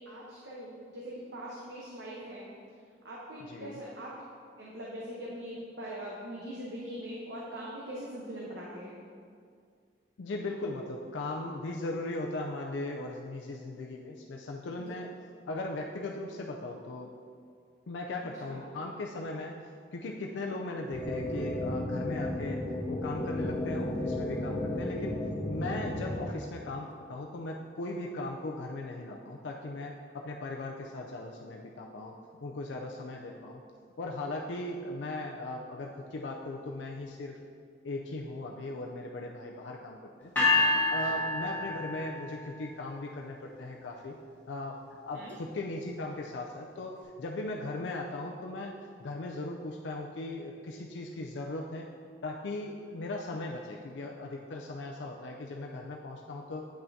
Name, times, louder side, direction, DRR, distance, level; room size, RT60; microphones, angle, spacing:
voice 1, 0.0-2.4 3.0-4.2 4.6-8.9 18.4-18.6 41.1-41.2 45.1-45.3, right 1 dB, 80° right, -5 dB, 0.9 m, -42 dB
voice 2, 3.4-3.8 10.2-15.1 15.5-17.1 17.9-19.6 19.9-25.2 25.5-33.6 34.0-37.4 37.8-40.5 40.9-44.2 44.5-51.9 52.2-56.6, left 2 dB, 85° left, 0 dB, 0.4 m, -38 dB
sound 1, 20.9-26.3, left 1 dB, 30° left, 0.6 m, -33 dB
sound 2, 40.4-42.5, left 2 dB, 10° left, 1.6 m, -27 dB
8.7 x 5.6 x 2.7 m, 2.2 s
head